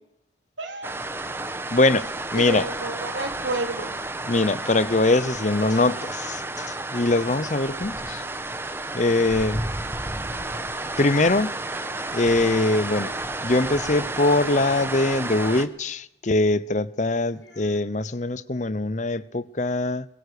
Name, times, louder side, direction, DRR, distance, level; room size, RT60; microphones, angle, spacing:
voice 1, 0.6-0.9 2.3-4.0, right 2 dB, 85° right, 3.8 m, -30 dB
sound 1, 0.8-15.7, right 2 dB, 15° right, 1.2 m, -31 dB
voice 2, 1.7-2.7 4.3-8.2 8.9-9.6 11.0-11.5 12.1-13.1 13.4-20.1, left 2 dB, 40° left, 0.8 m, -22 dB
sound 2, 10.3-12.8 15.4-15.5 17.2-17.8, equal, 90° left, 7.8 m, -52 dB
23.5 x 23.0 x 6.9 m
head